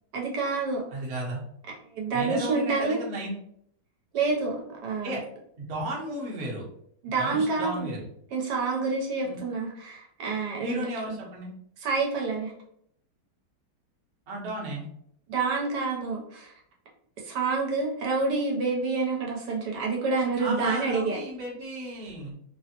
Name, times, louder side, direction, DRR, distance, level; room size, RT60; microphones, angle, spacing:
voice 1, 0.1-0.8 2.0-3.0 4.1-5.2 7.0-7.9 8.3-11.2 11.8-12.5 15.3-16.5 17.2-21.2, right 4 dB, 75° right, -1 dB, 1.2 m, -28 dB
voice 2, 0.9-1.4 2.1-3.4 5.0-5.2 5.6-6.6 7.2-8.0 9.2-9.4 10.6-11.5 14.3-14.8 20.4-22.3, right 1 dB, 50° right, -3 dB, 1.0 m, -34 dB
3.3 x 2.0 x 2.7 m, 0.69 s
omnidirectional pair, 1.9 m